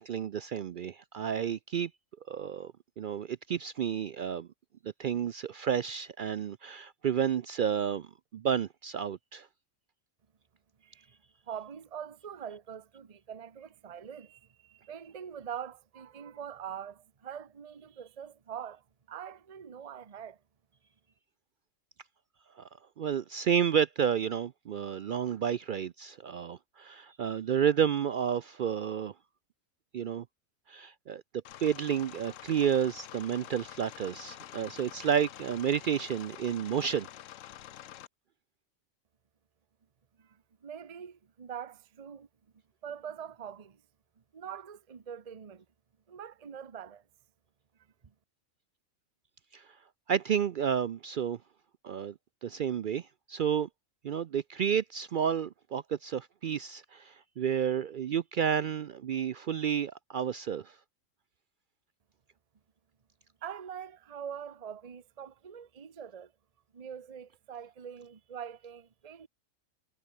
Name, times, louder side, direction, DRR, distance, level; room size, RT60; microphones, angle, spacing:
voice 1, 0.0-1.9 2.3-4.5 4.8-9.5 22.6-22.7 23.0-29.1 29.9-30.2 30.7-31.2 31.6-37.1 49.5-49.6 50.1-51.4 51.8-52.1 52.4-53.7 54.0-60.7, right 8 dB, 70° right, 0.4 m, -31 dB
voice 2, 11.5-20.4 40.2-42.3 42.8-43.8 44.3-45.6 46.1-47.0 48.0-48.1 63.4-66.3 66.7-69.3, right 8 dB, 30° right, 0.9 m, -44 dB
sound 1, 31.4-38.1, left 12 dB, 70° left, 1.0 m, -47 dB
omnidirectional pair, 1.4 m